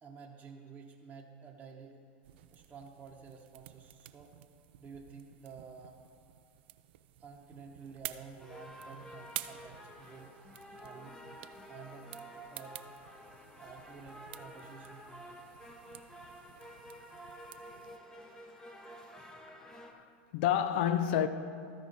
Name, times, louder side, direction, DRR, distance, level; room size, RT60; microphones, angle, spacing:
voice 1, 0.0-2.0 2.5-4.3 4.8-6.0 7.2-10.3 10.7-11.2 11.7-12.1 12.5-12.8 13.6-15.4, right 5 dB, 25° right, 0.9 m, -51 dB
sound 1, 2.2-18.0, right 15 dB, 70° right, 0.4 m, -51 dB
sound 2, 8.4-19.9, equal, 10° left, 0.9 m, -51 dB
voice 2, 19.6-20.0 20.3-21.3, left 10 dB, 65° left, 0.5 m, -29 dB
14.0 x 4.9 x 4.0 m
hypercardioid pair, 105°, 6 cm